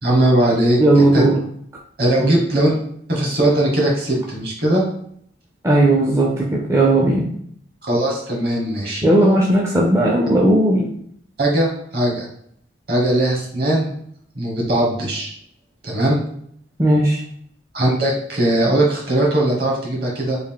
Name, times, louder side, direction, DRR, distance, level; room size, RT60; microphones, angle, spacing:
voice 1, 0.0-0.8 1.1-1.2 2.0-2.7 3.1-4.8 7.8-9.0 11.4-12.3 12.9-13.9 14.3-15.3 15.8-16.2 17.7-20.4, right 1 dB, 55° right, -2 dB, 1.1 m, -19 dB
voice 2, 0.8-1.4 2.2-2.3 5.6-7.3 9.0-10.9 16.8-17.2, right 1 dB, 15° right, -2 dB, 0.4 m, -16 dB
3.5 x 2.5 x 3.6 m, 0.66 s
head